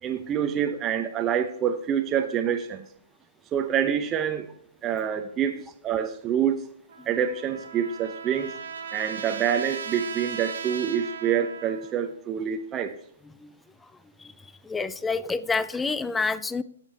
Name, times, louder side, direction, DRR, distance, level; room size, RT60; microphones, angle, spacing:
voice 1, 0.0-2.8 3.5-4.5 4.8-6.6 7.1-8.5 8.9-12.9, right 8 dB, 20° right, 6 dB, 0.8 m, -26 dB
Trumpet, 6.9-12.0, right 6 dB, 65° right, 1.4 m, -37 dB
voice 2, 14.2-16.6, left 4 dB, 10° left, 17 dB, 0.5 m, -29 dB
15.0 x 6.9 x 2.8 m, 0.64 s
hypercardioid pair, 130°, 0 cm